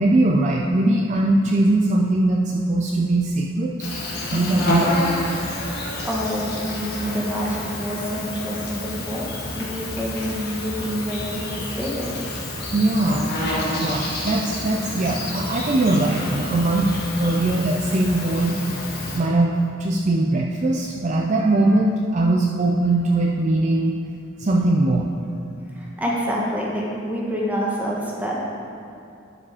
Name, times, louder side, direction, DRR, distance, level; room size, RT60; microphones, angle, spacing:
voice 1, 0.0-3.7 4.3-5.0 12.7-13.3 13.7-16.9 17.2-18.6 19.1-24.0 24.4-25.1, right 2 dB, 35° right, -1 dB, 0.4 m, -20 dB
Insect, 3.8-19.2, left 1 dB, 55° left, 1.8 m, -28 dB
voice 2, 4.3-4.6 6.0-9.3 9.5-12.1 25.7-28.4, equal, 10° right, -4 dB, 1.3 m, -27 dB
11.0 x 5.0 x 4.8 m, 2.6 s
head